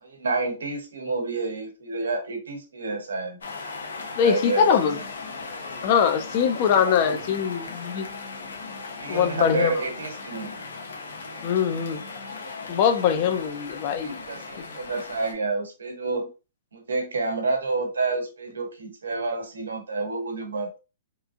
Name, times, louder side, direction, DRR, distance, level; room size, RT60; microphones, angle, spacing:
voice 1, 0.0-3.4 4.0-4.7 6.8-7.3 8.8-10.6 14.0-16.3 16.7-20.8, right 3 dB, 85° right, 0.8 m, -29 dB
sound 1, 3.4-15.3, left 4 dB, 85° left, 0.7 m, -37 dB
voice 2, 4.2-5.0 5.8-8.0 9.1-9.7 11.4-12.0 12.7-14.2 14.6-14.7, left 7 dB, 45° left, 0.5 m, -22 dB
2.9 x 2.5 x 2.4 m
hypercardioid pair, 135°, 0 cm